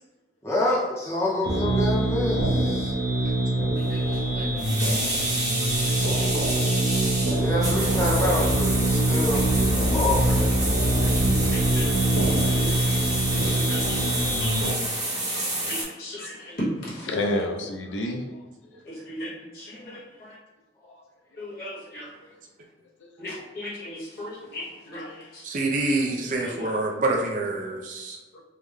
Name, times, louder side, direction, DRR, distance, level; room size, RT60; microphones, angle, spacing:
voice 1, 0.4-2.9 3.2-3.3 7.3-10.5, left 1 dB, 15° left, -4 dB, 0.6 m, -27 dB
sound 1, 1.4-14.7, right 1 dB, 60° right, 0.9 m, -24 dB
voice 2, 3.8-4.9 11.5-14.9 15.7-17.2 18.8-20.4 21.4-22.1 23.2-25.5 26.4-26.7, equal, 55° left, -7 dB, 1.3 m, -38 dB
sound 2, 4.1-4.2 4.6-15.8, right 2 dB, 20° right, 0.8 m, -29 dB
voice 3, 4.8-6.0 6.8-7.0 7.2-7.5 10.9-11.0 12.3-13.1 13.7-13.8 14.2-14.4 15.1-15.5 17.1-18.5 19.8-20.0 20.8-21.0 23.0-23.1 24.4-24.5 26.0-26.8 28.3-28.4, left 1 dB, 85° left, 3 dB, 0.5 m, -34 dB
voice 4, 25.4-28.2, right 2 dB, 45° right, -1 dB, 0.4 m, -26 dB
3.5 x 2.1 x 3.3 m, 1.2 s
head